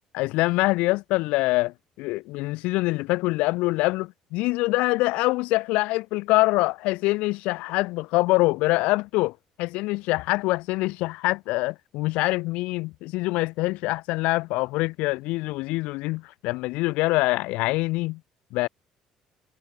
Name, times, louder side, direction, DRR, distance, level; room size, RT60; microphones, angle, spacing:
voice 1, 0.1-18.2 18.5-18.7, left 21 dB, 75° left, 0.5 m, -25 dB
supercardioid pair, 65°, 2 cm